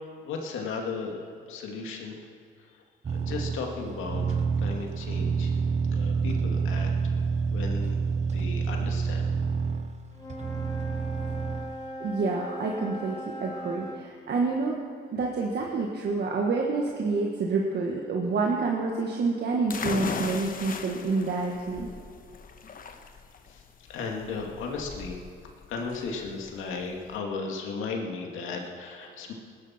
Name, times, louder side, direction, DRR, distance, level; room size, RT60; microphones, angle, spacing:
voice 1, 0.2-2.2 2.6-5.6 5.9-7.2 7.4-8.0 8.3-9.3 23.5-23.6 23.9-25.2 25.7-29.3, left 4 dB, 85° left, 1 dB, 2.1 m, -36 dB
sound 1, 3.0-11.8, right 5 dB, 35° right, 0.9 m, -28 dB
Wind instrument woodwind instrument, 10.1-14.1, equal, 20° left, 3.1 m, -39 dB
voice 2, 12.0-14.8 15.1-21.9, right 3 dB, 55° right, -1 dB, 1.6 m, -28 dB
sound 2, 19.7-27.2, left 5 dB, 45° left, 1.1 m, -38 dB
20.5 x 11.5 x 4.4 m, 2.1 s
cardioid pair, 90°, 20 cm